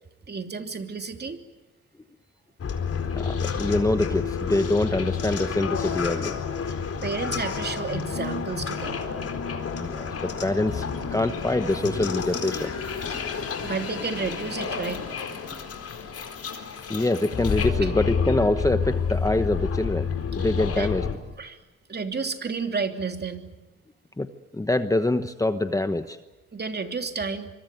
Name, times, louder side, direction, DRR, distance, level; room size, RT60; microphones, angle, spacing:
voice 1, 0.3-1.4 6.7-6.8 7.0-9.0 13.1-13.2 13.6-15.0 17.8-17.9 20.7-20.9 21.4-21.6 21.9-23.4 26.5-27.5, right 4 dB, 35° right, 5 dB, 3.1 m, -31 dB
sound 1, 2.6-21.1, left 5 dB, 50° left, 4.3 m, -29 dB
voice 2, 3.1-6.4 9.8-10.8 11.1-12.7 16.9-20.1 20.4-21.1 24.2-24.3 24.5-26.2, left 2 dB, 10° left, 9 dB, 1.1 m, -25 dB
25.0 x 24.5 x 9.3 m, 1.1 s
cardioid pair, 90°, 30 cm